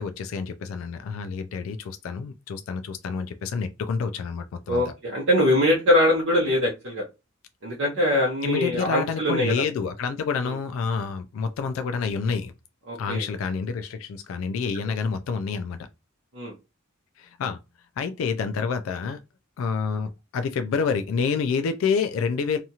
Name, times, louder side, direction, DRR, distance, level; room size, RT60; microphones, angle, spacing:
voice 1, 0.0-4.9 8.4-12.5 13.0-15.8 17.2-17.6 18.0-19.2 19.6-22.6, left 5 dB, 75° left, 0.3 m, -28 dB
voice 2, 4.7-7.0 7.6-9.5 10.4-10.5 12.9-13.2 16.3-16.5, left 1 dB, 65° right, 0.7 m, -22 dB
2.8 x 2.3 x 2.7 m
head